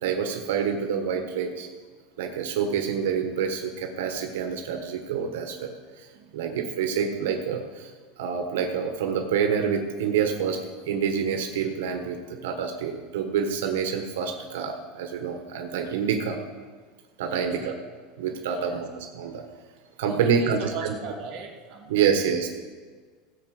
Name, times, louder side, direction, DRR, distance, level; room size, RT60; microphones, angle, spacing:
voice 1, 0.0-1.7 2.2-16.4 17.2-17.7 18.2-19.4 20.0-21.0 21.9-22.5, right 7 dB, 90° right, 4 dB, 1.3 m, -27 dB
voice 2, 6.1-6.7 17.3-17.7 18.5-18.8 20.0-22.2, right 5 dB, 40° right, -1 dB, 2.1 m, -39 dB
16.0 x 5.8 x 7.7 m, 1.5 s
supercardioid pair, 160°, 0 cm